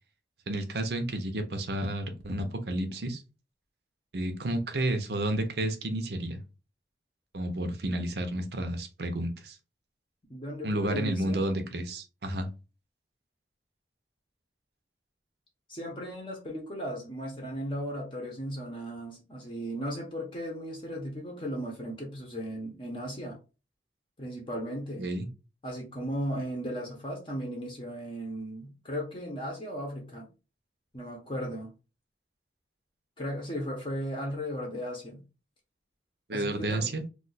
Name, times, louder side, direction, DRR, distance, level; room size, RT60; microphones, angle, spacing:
voice 1, 0.5-3.2 4.1-6.4 7.3-9.6 10.6-12.5 25.0-25.3 36.3-37.0, right 1 dB, 70° right, 6 dB, 0.6 m, -31 dB
voice 2, 10.3-11.5 15.7-23.4 24.2-25.1 25.6-30.3 30.9-31.7 33.2-35.2 36.3-36.9, equal, 30° left, -1 dB, 0.8 m, -36 dB
2.4 x 2.3 x 3.9 m, 0.31 s
head